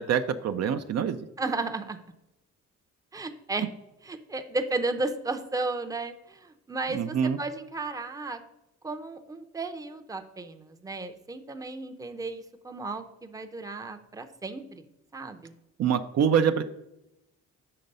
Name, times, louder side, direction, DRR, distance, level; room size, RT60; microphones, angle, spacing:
voice 1, 0.0-1.3 6.9-7.4 15.8-16.6, right 7 dB, 55° right, 9 dB, 0.5 m, -25 dB
voice 2, 1.4-2.0 3.1-3.7 4.1-8.4 8.8-14.8 15.1-15.5, right 3 dB, 10° right, 7 dB, 0.6 m, -34 dB
6.6 x 3.9 x 5.3 m, 0.90 s
cardioid pair, 95°, 31 cm